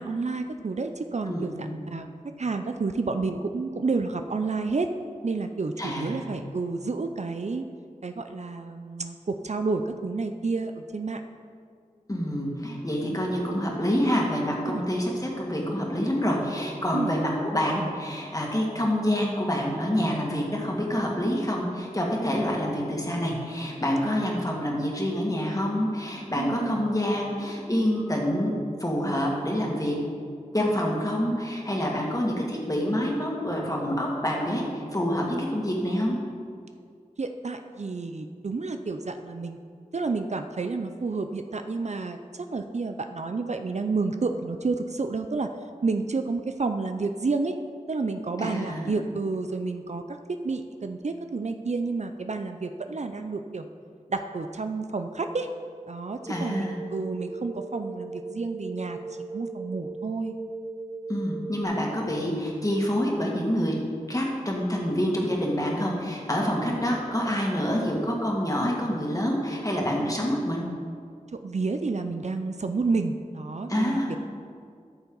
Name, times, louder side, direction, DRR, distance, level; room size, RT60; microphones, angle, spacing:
voice 1, 0.0-2.1 2.4-4.9 5.2-7.6 8.0-11.2 13.0-13.2 14.7-14.8 16.9-17.1 26.3-26.8 37.2-39.6 39.9-45.5 45.8-47.5 47.9-50.2 50.4-53.6 54.1-55.5 55.9-59.0 59.3-60.3 71.4-74.2, right 3 dB, 55° right, 7 dB, 0.5 m, -30 dB
voice 2, 1.3-1.8 5.8-6.2 12.1-28.5 28.8-30.0 30.5-36.2 48.4-48.9 56.3-56.7 61.1-63.7 64.1-70.7 73.7-74.1, equal, 25° left, -2 dB, 2.0 m, -27 dB
sound 1, 56.2-61.6, right 3 dB, 10° left, 2.0 m, -38 dB
13.5 x 6.9 x 4.0 m, 2.2 s
wide cardioid pair, 65°, 14 cm